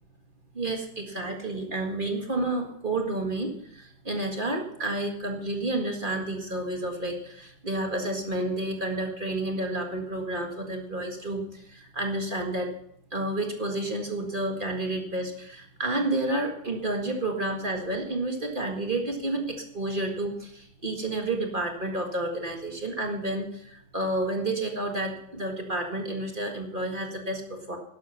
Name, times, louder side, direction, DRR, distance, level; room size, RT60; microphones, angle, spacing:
voice 1, 0.5-12.7 13.1-27.8, right 2 dB, 30° right, 2 dB, 1.9 m, -30 dB
12.0 x 11.5 x 5.7 m, 0.70 s
omnidirectional pair, 1.9 m